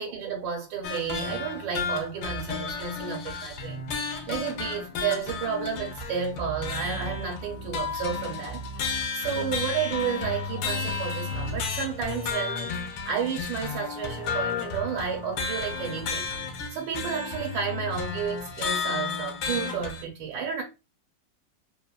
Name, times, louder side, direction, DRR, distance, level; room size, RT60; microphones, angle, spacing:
voice 1, 0.0-3.8 4.3-16.3 16.7-20.6, right 7 dB, 85° right, 1.4 m, -32 dB
sound 1, 0.8-20.0, left 4 dB, 80° left, 1.3 m, -33 dB
3.3 x 2.1 x 2.2 m
omnidirectional pair, 2.0 m